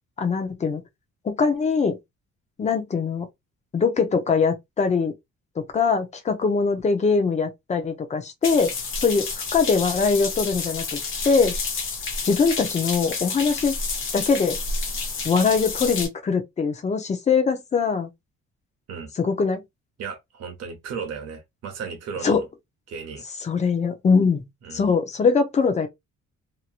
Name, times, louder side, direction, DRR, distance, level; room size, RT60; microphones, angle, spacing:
voice 1, 0.2-0.8 1.2-2.0 2.6-3.3 3.7-5.1 5.6-11.0 11.2-11.6 12.2-13.7 14.1-14.6 15.2-18.1 19.2-19.6 22.2-22.4 23.4-24.4 24.7-25.9, left 5 dB, 25° left, 0.6 m, -22 dB
sound 1, 8.4-16.1, left 4 dB, 45° left, 1.1 m, -30 dB
voice 2, 20.0-22.4 22.9-23.2 24.6-24.9, right 6 dB, 60° right, 1.0 m, -35 dB
2.9 x 2.8 x 2.4 m
cardioid pair, 175°, 29 cm